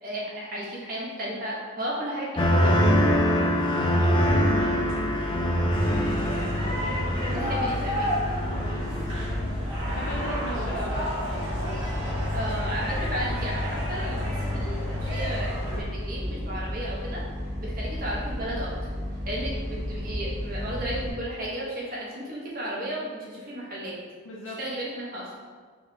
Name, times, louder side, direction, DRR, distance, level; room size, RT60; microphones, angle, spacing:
voice 1, 0.0-2.7 7.3-8.1 12.3-17.2 17.6-18.7 19.2-24.0 24.6-25.2, right 1 dB, 45° right, -5 dB, 1.1 m, -34 dB
sound 1, 2.4-9.4 9.8-10.3, equal, 25° left, 0.4 m, -24 dB
voice 2, 3.9-4.8 5.7-7.6 7.9-8.0 8.5-9.5 9.9-11.0 24.2-24.6, equal, 70° left, -4 dB, 0.6 m, -39 dB
sound 2, 4.2-21.1, left 1 dB, 75° right, 1.3 m, -33 dB
sound 3, 5.7-15.8, left 1 dB, 25° right, 1.4 m, -31 dB
4.7 x 3.2 x 2.8 m, 1.5 s
head